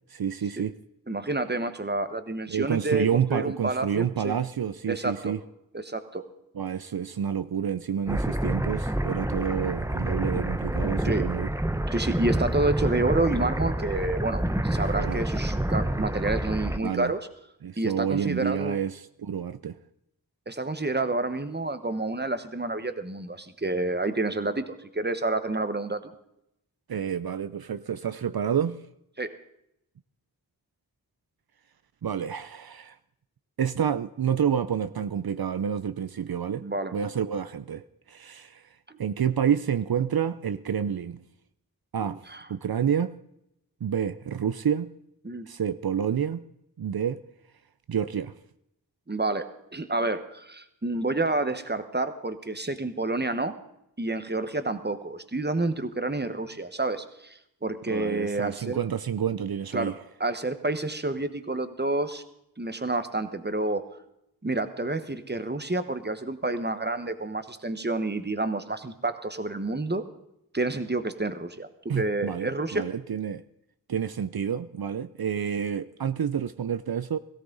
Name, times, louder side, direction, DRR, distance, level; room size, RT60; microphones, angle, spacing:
voice 1, 0.1-0.8 2.5-5.4 6.6-11.5 14.9-15.2 16.8-17.1 17.6-19.8 26.9-28.8 32.0-33.0 33.6-36.6 36.9-38.7 39.0-41.2 41.9-42.2 42.5-43.2 43.8-44.9 45.5-46.4 46.8-47.2 47.9-48.3 57.9-60.0 71.9-73.4 73.9-77.2, right 8 dB, 75° right, 0.5 m, -29 dB
voice 2, 1.1-4.4 4.9-5.4 5.7-6.3 11.0-11.3 11.9-17.2 17.8-18.8 20.5-26.1 29.2-29.4 36.6-36.9 38.9-39.0 42.0-42.4 45.2-45.5 49.1-53.6 54.0-58.8 59.7-59.9 60.2-62.2 62.6-63.9 64.4-70.1 70.5-72.9, right 2 dB, 30° right, 1.2 m, -29 dB
sound 1, 8.1-16.8, right 1 dB, 10° right, 0.8 m, -28 dB
18.0 x 16.0 x 4.0 m
wide cardioid pair, 50°, 37 cm